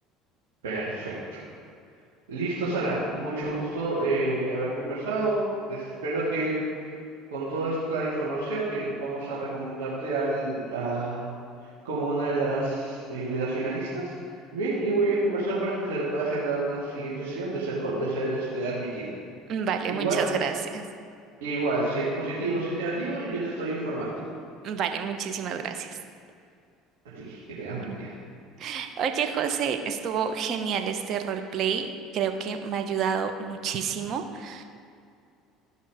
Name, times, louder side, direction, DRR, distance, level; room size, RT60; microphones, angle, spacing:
voice 1, 0.6-1.4 2.3-5.4 5.7-6.6 7.3-11.3 11.8-14.1 14.5-19.1 19.9-20.2 21.4-24.2 27.1-28.2, right 2 dB, 80° right, -10 dB, 2.4 m, -29 dB
voice 2, 19.5-20.9 24.6-26.0 27.8-28.0 28.6-34.6, right 7 dB, 55° right, 6 dB, 1.0 m, -29 dB
14.0 x 5.5 x 5.0 m, 2.4 s
hypercardioid pair, 70°, 0 cm